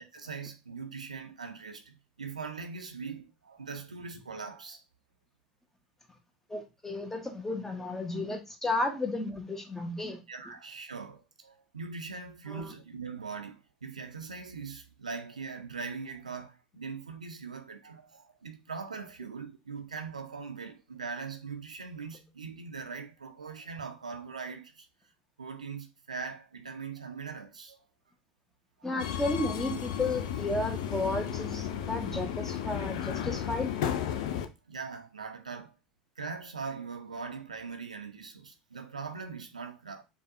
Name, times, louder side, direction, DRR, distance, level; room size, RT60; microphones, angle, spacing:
voice 1, 0.1-4.8 10.3-24.9 25.4-27.8 34.7-35.7 36.2-40.0, right 5 dB, 85° right, 0.4 m, -41 dB
voice 2, 6.5-10.2 12.5-12.7 28.8-33.7, left 2 dB, 10° left, 0.9 m, -33 dB
Subway metro underground, 29.0-34.5, left 9 dB, 65° left, 0.4 m, -33 dB
5.2 x 2.3 x 2.6 m
figure-of-eight pair, 75°, 4 cm